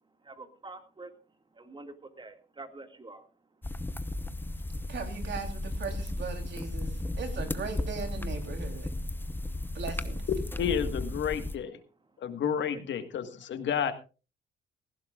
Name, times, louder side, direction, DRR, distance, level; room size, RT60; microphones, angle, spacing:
voice 1, 0.2-1.1 1.5-3.3, right 2 dB, 25° right, 7 dB, 2.2 m, -46 dB
sound 1, 3.6-11.6, left 1 dB, 10° left, 0.8 m, -35 dB
voice 2, 4.9-8.9 9.7-10.2, right 5 dB, 65° right, 5 dB, 3.5 m, -38 dB
voice 3, 10.6-11.8 12.2-13.9, left 8 dB, 65° left, 9 dB, 1.7 m, -31 dB
18.0 x 15.5 x 2.5 m, 0.33 s
cardioid pair, 90°, 20 cm